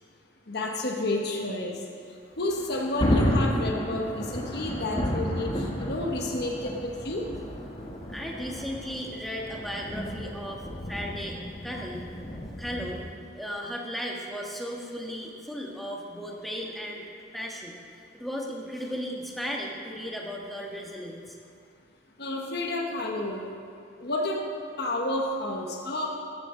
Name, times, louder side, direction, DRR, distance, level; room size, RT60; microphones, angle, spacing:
voice 1, 0.5-1.7 2.4-7.3 22.2-23.5 24.0-24.4 24.8-26.1, left 1 dB, 55° left, 0 dB, 1.2 m, -30 dB
Thunder, 2.4-13.1, equal, 30° left, 1.5 m, -32 dB
voice 2, 8.1-11.4 11.6-12.0 12.6-13.0 13.3-17.0 17.3-21.4, equal, ahead, -2 dB, 1.4 m, -36 dB
15.0 x 13.5 x 3.9 m, 2.3 s
head